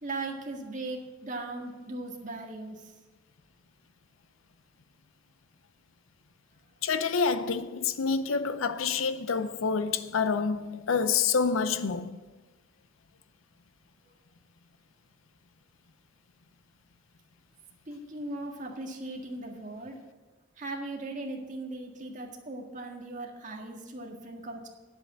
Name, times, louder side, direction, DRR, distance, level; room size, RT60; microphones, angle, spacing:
voice 1, 0.0-2.9 17.9-20.0 20.6-24.7, right 2 dB, 40° right, 1.8 m, -38 dB
voice 2, 6.8-12.2, left 5 dB, 85° left, 0.6 m, -27 dB
10.5 x 8.0 x 7.8 m
head